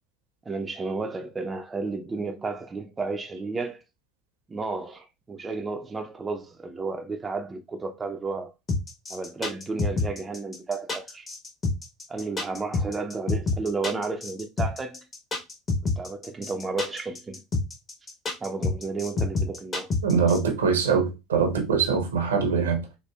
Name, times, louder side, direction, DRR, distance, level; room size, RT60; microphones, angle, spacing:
voice 1, 0.5-3.8 4.5-8.5 9.1-11.3 12.1-15.1 16.0-17.4 18.4-19.9, right 3 dB, 20° right, 0.5 m, -32 dB
sound 1, 8.7-20.4, left 3 dB, 30° left, 1.1 m, -27 dB
voice 2, 20.0-22.8, right 5 dB, 80° right, 0.8 m, -23 dB
4.1 x 2.5 x 2.3 m
figure-of-eight pair, 70°, 0 cm